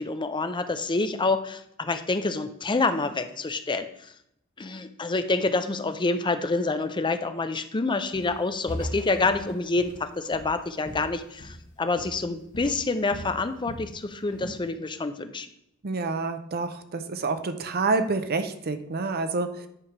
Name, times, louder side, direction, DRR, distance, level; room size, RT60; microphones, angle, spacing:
voice 1, 0.0-3.9 4.6-15.5, left 3 dB, 20° left, 9 dB, 0.5 m, -27 dB
Walk footsteps, 8.1-8.4 8.7-11.7 12.0-12.3 12.5-13.9 14.3-14.7, equal, 40° left, 1.4 m, -39 dB
voice 2, 15.8-19.7, right 3 dB, 45° right, 9 dB, 0.6 m, -28 dB
9.8 x 3.4 x 5.9 m, 0.75 s
head